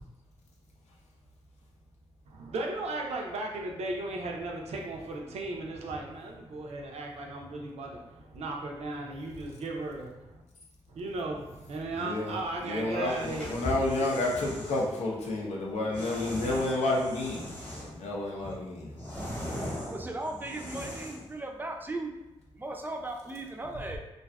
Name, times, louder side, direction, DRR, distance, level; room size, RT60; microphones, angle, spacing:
voice 1, 2.3-10.4 10.9-13.6, right 2 dB, 75° right, 0 dB, 0.5 m, -36 dB
voice 2, 11.9-12.3 12.6-19.9, left 2 dB, 85° left, -3 dB, 0.6 m, -31 dB
sound 1, 13.0-14.9 15.9-18.0 18.4-21.3, equal, 15° left, 0.9 m, -39 dB
voice 3, 19.9-22.1 22.5-24.0, right 2 dB, 15° right, 2 dB, 0.4 m, -37 dB
2.5 x 2.3 x 2.2 m, 0.98 s
cardioid pair, 60°, 11 cm